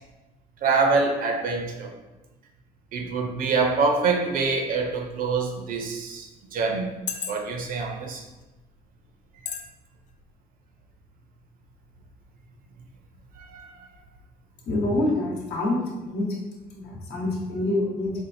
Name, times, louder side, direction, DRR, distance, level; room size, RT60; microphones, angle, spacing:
voice 1, 0.6-1.9 2.9-6.9 7.3-8.2 13.5-13.7, right 4 dB, 55° right, 3 dB, 0.5 m, -25 dB
sound 1, 5.0-5.1 5.9-6.0 6.8-7.7 8.4-8.6 9.5-9.7 10.1-10.2, left 7 dB, 45° left, 0.4 m, -33 dB
voice 2, 14.7-16.4 16.7-18.1, left 2 dB, 70° left, -2 dB, 0.9 m, -26 dB
4.3 x 2.3 x 2.5 m, 1.1 s
cardioid pair, 110°, 17 cm